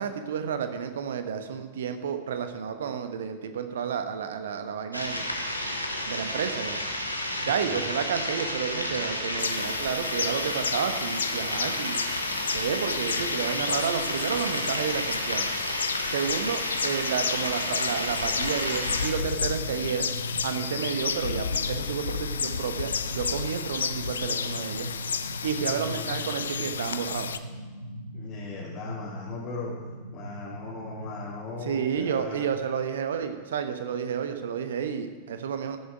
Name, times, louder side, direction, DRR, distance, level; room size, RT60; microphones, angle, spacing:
voice 1, 0.0-5.2 6.1-6.8 7.5-12.0 12.3-15.5 16.1-24.9 25.4-27.3 31.6-35.8, right 7 dB, 60° right, 8 dB, 1.0 m, -31 dB
sound 1, 4.9-19.1, left 1 dB, 90° left, 1.1 m, -31 dB
voice 2, 7.4-7.8 25.7-26.0 28.1-29.7 30.1-32.5, left 4 dB, 35° left, -6 dB, 2.7 m, -39 dB
sound 2, 9.4-27.4, left 6 dB, 70° left, 0.5 m, -32 dB
sound 3, 18.8-31.6, equal, 85° right, 0.6 m, -39 dB
14.5 x 7.4 x 4.9 m, 1.3 s
figure-of-eight pair, 90°, 0 cm